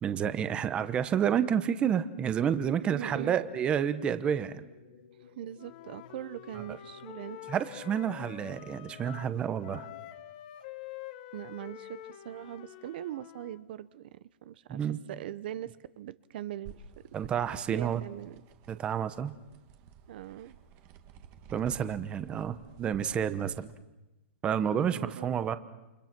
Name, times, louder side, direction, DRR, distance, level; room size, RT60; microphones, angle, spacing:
voice 1, 0.0-4.6 7.5-9.9 14.7-15.0 17.1-18.0 18.7-19.3 21.5-23.7 24.4-25.6, right 8 dB, 15° right, 12 dB, 0.9 m, -30 dB
voice 2, 2.9-3.4 5.4-7.4 11.3-16.8 17.7-18.4 20.1-20.6 24.8-25.6, right 12 dB, 50° right, 16 dB, 0.8 m, -41 dB
sound 1, 3.2-10.1, left 7 dB, 65° left, 2.8 m, -55 dB
Wind instrument woodwind instrument, 5.6-9.4 9.6-13.6, left 13 dB, 45° left, 1.3 m, -47 dB
sound 2, 16.6-23.7, right 7 dB, 30° right, 1.6 m, -53 dB
29.0 x 26.5 x 6.0 m, 1.0 s
hypercardioid pair, 160°, 7 cm